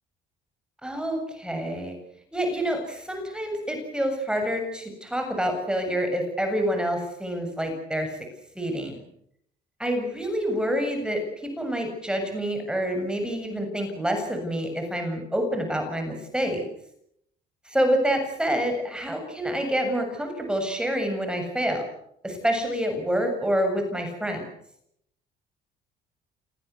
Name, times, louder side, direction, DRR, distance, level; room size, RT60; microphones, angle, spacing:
voice 1, 0.8-2.0 2.3-8.2 8.6-9.0 9.8-11.2 11.6-16.6 17.7-21.8 22.2-24.5, equal, 5° right, 4 dB, 7.4 m, -27 dB
29.0 x 20.0 x 8.4 m, 0.74 s
cardioid pair, 110°, 17 cm